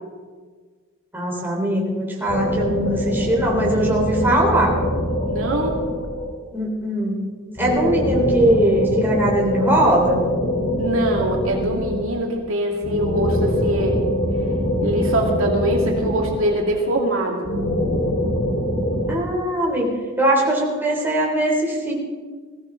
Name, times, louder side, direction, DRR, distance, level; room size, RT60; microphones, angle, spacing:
voice 1, 1.1-4.8 6.5-7.2 7.6-10.2 19.1-19.9 20.2-21.9, right 1 dB, 10° right, -3 dB, 3.5 m, -20 dB
sound 1, 2.3-6.5 7.6-12.2 12.8-16.8 17.4-19.1, equal, 60° left, 3.1 m, -23 dB
voice 2, 5.3-5.8 10.8-14.0 14.8-17.5, right 1 dB, 75° right, 0 dB, 2.4 m, -23 dB
21.0 x 16.0 x 3.9 m, 1.5 s
head